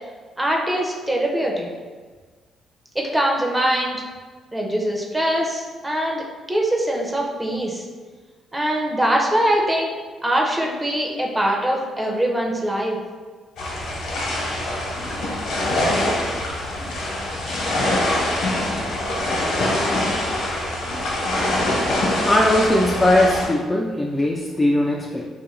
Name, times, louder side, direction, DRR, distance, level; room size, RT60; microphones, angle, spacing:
voice 1, 0.4-1.7 2.9-4.0 4.5-7.8 8.5-9.9 10.2-13.0, right 1 dB, 15° right, -1 dB, 0.7 m, -22 dB
sound 1, 13.6-23.5, left 1 dB, 75° left, 0.9 m, -24 dB
voice 2, 22.2-25.3, left 1 dB, 15° left, -1 dB, 0.3 m, -19 dB
2.7 x 2.5 x 4.1 m, 1.4 s
cardioid pair, 90°, 0 cm